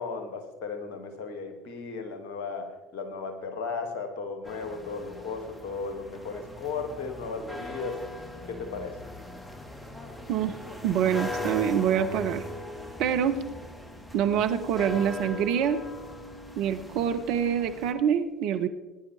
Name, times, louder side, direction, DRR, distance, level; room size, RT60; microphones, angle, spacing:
voice 1, 0.0-8.0 8.5-9.0, left 4 dB, 55° left, 5 dB, 2.2 m, -35 dB
sound 1, 4.4-17.9, left 1 dB, 5° left, 1.5 m, -40 dB
voice 2, 10.8-12.4 13.0-13.4 14.1-15.8 16.6-18.7, right 8 dB, 55° right, 8 dB, 0.9 m, -25 dB
18.5 x 10.0 x 3.4 m, 1.1 s
figure-of-eight pair, 65°, 0 cm